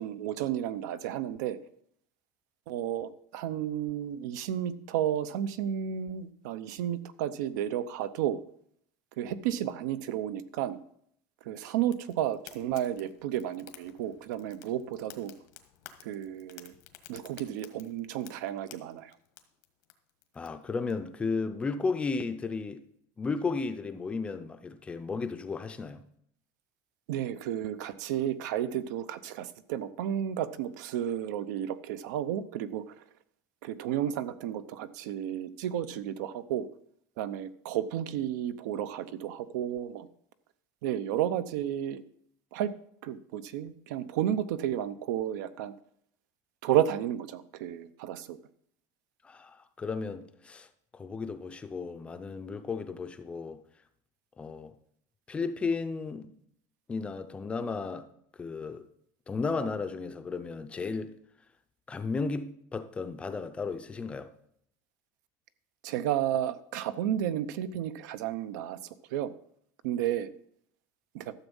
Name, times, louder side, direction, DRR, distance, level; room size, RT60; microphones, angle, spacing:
voice 1, 0.0-1.6 2.7-8.4 9.2-10.8 11.4-15.3 16.0-16.7 17.1-19.1 27.1-33.0 33.6-36.7 37.2-40.1 40.8-42.0 42.5-42.7 43.0-45.7 46.6-48.4 65.8-68.8 69.1-69.3 69.8-70.3 71.1-71.3, right 11 dB, 85° right, 0.7 m, -32 dB
Fire, 11.9-20.9, left 13 dB, 85° left, 1.4 m, -54 dB
voice 2, 20.3-22.8 23.2-26.0 49.2-50.7 50.9-53.6 54.4-54.7 55.3-56.3 56.9-58.1 58.4-58.9 59.3-61.1 61.9-64.3, left 4 dB, 10° left, 0.5 m, -34 dB
13.0 x 7.1 x 5.4 m
cardioid pair, 180°, 10 cm